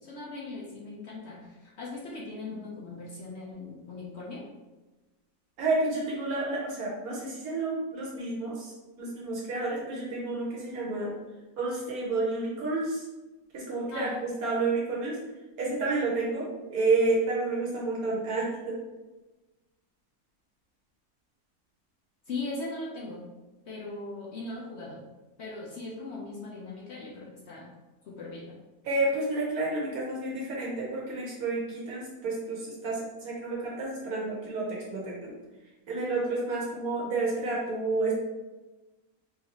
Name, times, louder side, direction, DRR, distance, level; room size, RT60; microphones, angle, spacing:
voice 1, 0.0-4.4 13.9-14.1 22.3-23.2 23.7-25.0 25.4-27.7 28.0-28.5, left 3 dB, 60° left, -3 dB, 0.8 m, -39 dB
voice 2, 5.6-11.1 11.6-13.1 13.5-15.2 15.6-18.8 28.8-35.3 35.9-38.1, right 3 dB, 70° right, -4 dB, 1.3 m, -30 dB
3.9 x 2.6 x 2.9 m, 1.1 s
omnidirectional pair, 1.6 m